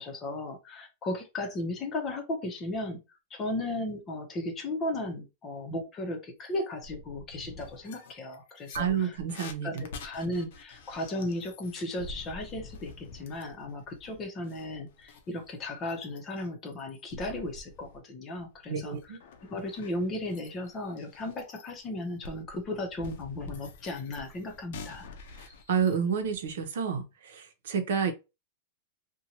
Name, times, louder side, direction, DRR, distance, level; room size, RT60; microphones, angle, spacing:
voice 1, 0.0-3.0 3.3-9.2 9.6-25.1, left 1 dB, 25° left, 0.7 m, -35 dB
sound 1, 6.5-6.6 6.8-18.0 18.4-26.0, left 2 dB, 65° left, 0.6 m, -47 dB
voice 2, 8.7-9.8 18.7-19.2 25.7-28.1, right 7 dB, 80° right, 0.7 m, -29 dB
2.7 x 2.2 x 2.8 m
supercardioid pair, 150°, 0 cm